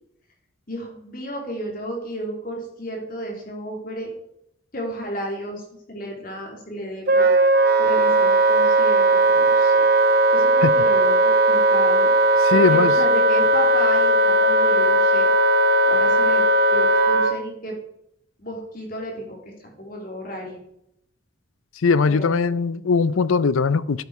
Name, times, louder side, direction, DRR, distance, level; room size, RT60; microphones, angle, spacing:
voice 1, 0.7-4.1 4.7-7.3 7.8-9.8 10.3-12.1 12.5-15.3 15.8-16.4 16.7-17.8 18.4-20.6 22.1-22.5, right 1 dB, 45° left, 3.3 m, -32 dB
Wind instrument woodwind instrument, 7.1-17.4, right 1 dB, 50° right, 0.9 m, -17 dB
voice 2, 12.4-12.9 21.8-24.0, left 4 dB, 80° left, 0.5 m, -20 dB
11.5 x 8.1 x 4.8 m
head